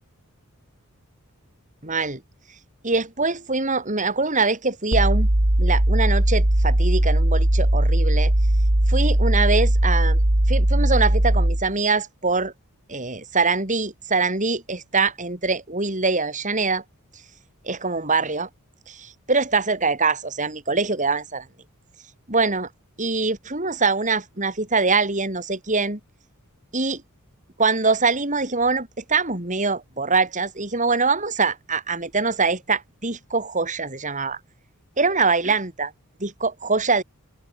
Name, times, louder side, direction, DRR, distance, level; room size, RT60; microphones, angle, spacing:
voice 1, 1.8-2.2 2.8-5.3 5.6-8.3 8.9-10.2 10.5-12.5 12.9-16.8 17.7-18.5 18.9-21.4 22.3-22.7 23.0-26.0 26.7-27.0 27.6-34.4 35.0-35.9 36.2-37.0, right 4 dB, 35° right, 4.9 m, -23 dB
sound 1, 4.9-11.7, right 1 dB, 50° right, 2.3 m, -19 dB
open air
head